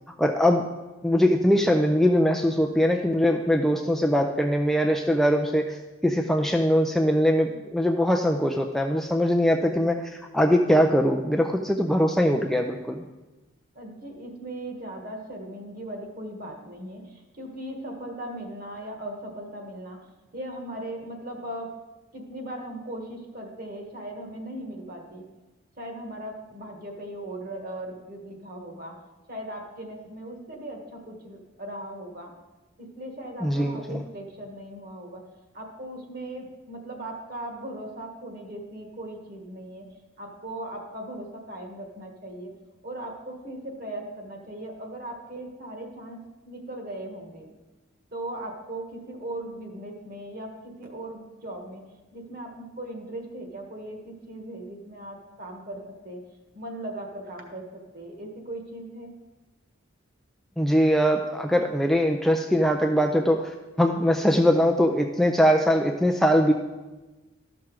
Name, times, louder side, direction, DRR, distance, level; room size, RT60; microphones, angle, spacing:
voice 1, 0.2-0.6 1.0-13.0 33.4-34.0 60.6-66.5, equal, ahead, 2 dB, 0.4 m, -22 dB
voice 2, 13.7-20.0 20.3-21.8 22.1-25.2 25.8-29.0 29.3-32.3 32.8-35.2 35.5-39.8 40.2-42.5 42.8-46.2 46.4-47.5 48.1-51.8 52.1-56.2 56.5-59.1, right 1 dB, 45° right, 2 dB, 1.6 m, -38 dB
13.0 x 6.0 x 4.7 m, 1.1 s
head